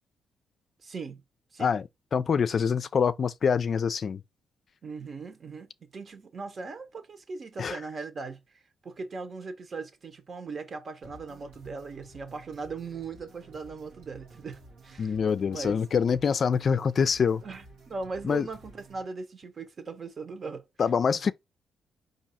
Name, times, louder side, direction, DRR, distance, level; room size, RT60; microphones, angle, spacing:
voice 1, 0.8-1.2 1.5-1.7 4.8-15.2 15.5-15.8 17.4-20.7 21.1-21.2, right 4 dB, 50° right, 1.1 m, -39 dB
voice 2, 1.6-4.2 7.6-7.8 15.0-17.4 18.2-18.4 20.8-21.3, left 6 dB, 55° left, 0.3 m, -25 dB
sound 1, 11.0-19.0, right 2 dB, 90° right, 1.3 m, -52 dB
4.6 x 2.7 x 4.1 m
supercardioid pair, 65°, 0 cm